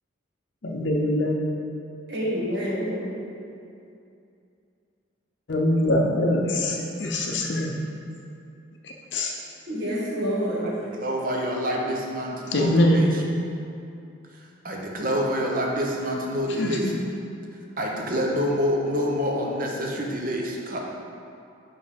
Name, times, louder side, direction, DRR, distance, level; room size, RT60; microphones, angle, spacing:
voice 1, 0.6-1.4 5.5-7.8 8.8-9.3 12.5-13.0 16.6-17.0, left 1 dB, 65° left, 0 dB, 0.6 m, -23 dB
voice 2, 2.1-3.1 9.7-10.6, equal, 60° right, -5 dB, 1.6 m, -27 dB
voice 3, 10.6-13.2 14.6-16.9 17.8-20.8, equal, 45° right, -1 dB, 0.9 m, -27 dB
5.5 x 5.3 x 5.1 m, 2.6 s
head